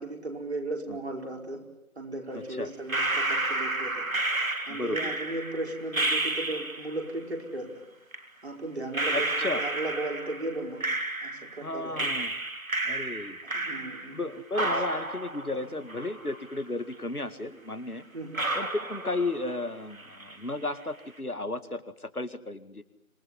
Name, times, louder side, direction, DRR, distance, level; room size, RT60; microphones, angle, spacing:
voice 1, 0.0-1.6 2.0-4.0 4.7-7.7 8.4-10.8 11.2-11.9 13.4-14.2 14.6-14.8 15.5-15.6 18.1-18.4, right 2 dB, 45° right, 2 dB, 5.3 m, -36 dB
voice 2, 2.3-2.7 4.7-5.2 9.1-9.6 11.6-12.3 12.8-13.4 14.1-18.0 18.6-22.8, left 2 dB, 90° left, 10 dB, 2.2 m, -34 dB
sound 1, 2.9-7.0 8.1-8.2 8.9-11.6 12.0-14.2 14.5-16.6 16.9-17.0 17.7-17.8 18.3-19.7 19.9-20.5, right 2 dB, 70° right, 3.2 m, -31 dB
26.5 x 19.0 x 9.7 m, 0.83 s
figure-of-eight pair, 165°, 43 cm